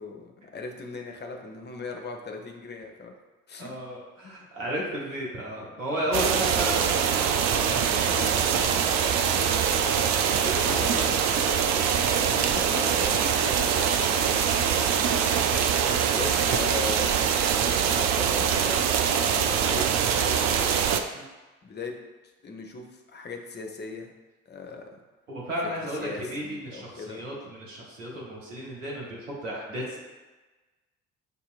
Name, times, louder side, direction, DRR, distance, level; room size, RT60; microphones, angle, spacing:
voice 1, 0.0-3.1 3.5-3.7 4.4-4.5 5.9-6.0 8.1-8.4 9.3-14.0 16.1-17.1 17.9-20.9 21.6-21.9 22.4-24.1 24.5-25.0 26.0-27.2, left 4 dB, 30° left, 2 dB, 0.7 m, -38 dB
voice 2, 3.6-8.2 21.1-21.2 25.3-30.0, equal, 90° right, -4 dB, 0.8 m, -34 dB
sound 1, 6.1-21.0, right 8 dB, 50° right, 0.4 m, -24 dB
6.6 x 2.8 x 2.4 m, 1.2 s
figure-of-eight pair, 45°, 37 cm